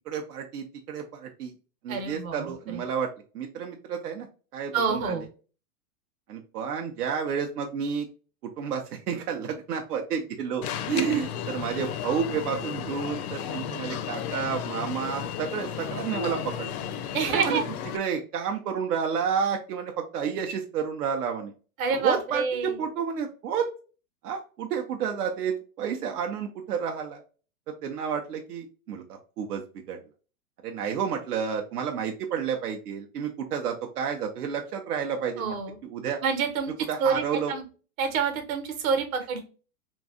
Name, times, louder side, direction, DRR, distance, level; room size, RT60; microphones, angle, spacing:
voice 1, 0.1-1.5 1.8-3.1 3.3-4.3 4.5-5.2 6.3-8.1 8.6-16.7 17.2-17.6 17.9-21.5 21.9-23.7 24.2-27.2 27.8-30.0 30.6-35.5 35.8-36.2 36.9-37.5, right 7 dB, 90° right, 3 dB, 0.7 m, -30 dB
voice 2, 1.9-2.8 4.7-5.2 17.1-17.6 21.8-22.8 35.4-35.8 36.2-36.7 37.0-37.6 38.0-39.4, right 5 dB, 65° right, 6 dB, 1.0 m, -27 dB
Alarm, 10.6-18.0, left 9 dB, 75° left, 0.6 m, -34 dB
3.0 x 2.6 x 2.4 m, 0.36 s
supercardioid pair, 150°, 45 cm